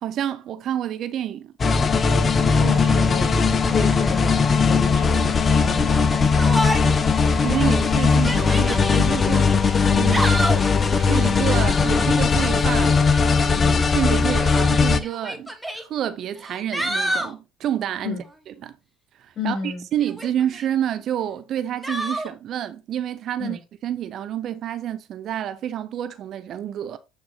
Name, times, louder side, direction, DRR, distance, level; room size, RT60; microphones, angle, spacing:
voice 1, 0.0-1.5 7.4-9.5 9.9-10.5 10.9-12.9 13.4-18.8 19.2-27.0, right 10 dB, 55° right, 0.8 m, -29 dB
sound 1, 1.6-15.0, left 5 dB, 30° left, 0.9 m, -19 dB
voice 2, 2.6-3.4 3.7-6.2 18.0-18.2 19.3-19.8 23.4-23.6, left 4 dB, 50° left, 4.7 m, -31 dB
Yell, 6.4-7.1 7.5-7.6 8.1-9.0 9.9-10.7 12.5-12.9 14.0-14.1 15.0-15.8 16.4-17.3 20.0-20.7 21.8-22.3, right 1 dB, 5° right, 1.7 m, -28 dB
9.1 x 4.4 x 4.0 m
hypercardioid pair, 70°, 0 cm